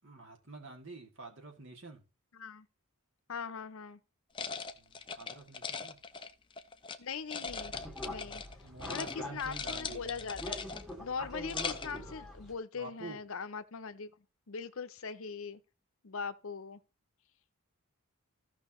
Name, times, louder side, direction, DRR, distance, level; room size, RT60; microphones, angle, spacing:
voice 1, 0.0-2.0 4.7-6.0 8.6-10.0 12.7-13.2, right 3 dB, 60° right, 2.4 m, -48 dB
voice 2, 2.3-2.7 3.3-4.0 7.0-7.7 8.0-8.4 8.9-10.6 11.0-14.1 14.5-15.6 16.0-16.8, left 5 dB, 65° left, 0.7 m, -40 dB
sound 1, 4.3-7.0 7.3-8.5 8.8-9.1 9.4-11.0 11.3-12.0, left 5 dB, 20° left, 0.5 m, -40 dB
sound 2, 7.5-12.5, left 1 dB, ahead, 2.2 m, -44 dB
15.0 x 5.6 x 3.1 m
head